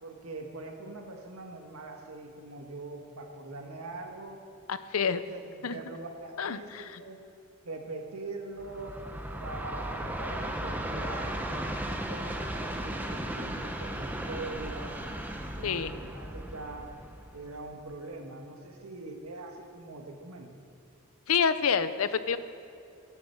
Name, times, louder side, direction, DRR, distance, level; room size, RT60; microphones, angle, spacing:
voice 1, 0.0-4.4 5.0-6.7 7.0-7.2 7.6-9.0 9.4-15.1 15.6-16.9 17.3-20.6, right 2 dB, 85° right, 3 dB, 1.8 m, -42 dB
voice 2, 4.7-5.2 5.6-5.8 6.4-7.0 15.6-15.9 21.3-22.4, left 6 dB, 80° left, 13 dB, 0.6 m, -28 dB
Train, 8.6-17.8, right 1 dB, 10° right, 0.8 m, -36 dB
14.5 x 10.0 x 7.1 m, 2.5 s
head